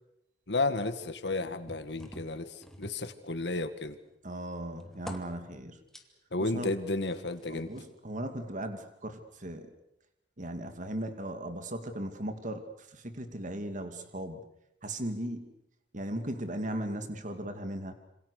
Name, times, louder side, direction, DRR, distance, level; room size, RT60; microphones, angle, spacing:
voice 1, 0.5-4.0 6.3-7.7, left 2 dB, 70° left, 10 dB, 1.9 m, -32 dB
sound 1, 1.7-3.7 4.1-6.0 7.1-7.9 8.6-8.7, equal, ahead, 2.3 m, -48 dB
voice 2, 4.2-5.7 6.5-6.7 7.5-9.7 10.4-12.6 12.9-14.4 14.8-15.5 15.9-17.9, right 1 dB, 45° right, 7 dB, 2.5 m, -37 dB
27.0 x 26.5 x 6.6 m, 0.80 s
head